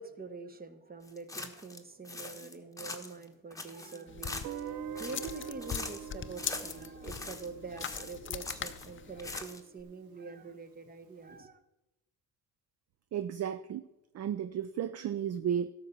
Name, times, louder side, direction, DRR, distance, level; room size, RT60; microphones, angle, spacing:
voice 1, 0.0-11.6, right 4 dB, 25° right, 1.1 m, -45 dB
sound 1, 1.1-1.8 2.0-3.2 3.5-4.7 4.9-6.1 6.4-7.5 7.8-8.9 9.2-9.8, left 2 dB, 10° left, 1.2 m, -42 dB
sound 2, 4.1-9.4, left 8 dB, 35° left, 0.6 m, -42 dB
Guitar, 4.4-9.3, right 9 dB, 75° right, 0.8 m, -45 dB
voice 2, 13.1-13.8 14.1-15.7, right 9 dB, 45° right, 0.5 m, -33 dB
12.5 x 5.5 x 7.2 m
cardioid pair, 85°, 36 cm